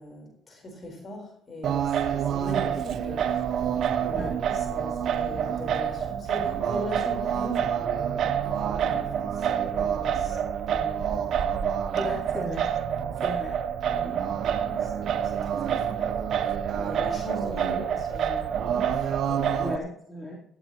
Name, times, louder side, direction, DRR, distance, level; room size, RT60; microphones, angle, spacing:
voice 1, 0.0-3.5 4.0-10.4 10.6-11.3 13.8-16.1 16.7-19.8, equal, 40° left, 2 dB, 4.3 m, -40 dB
Singing, 1.6-19.8, right 8 dB, 65° right, 0.9 m, -27 dB
voice 2, 12.0-12.7 13.2-13.6 14.5-14.6 19.6-20.4, left 1 dB, 15° left, -6 dB, 3.8 m, -35 dB
14.5 x 14.5 x 3.1 m, 0.71 s
cardioid pair, 85°, 0 cm